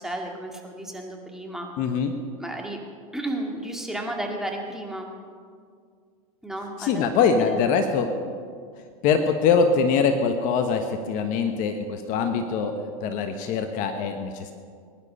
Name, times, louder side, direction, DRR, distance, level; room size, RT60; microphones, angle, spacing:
voice 1, 0.0-1.7 2.4-2.8 3.1-5.1 6.4-7.1 7.4-7.7, right 1 dB, ahead, 0 dB, 2.3 m, -33 dB
voice 2, 1.8-2.2 6.8-8.3 9.0-14.5, left 5 dB, 45° left, 7 dB, 1.2 m, -23 dB
21.0 x 11.0 x 5.5 m, 2.1 s
hypercardioid pair, 105°, 19 cm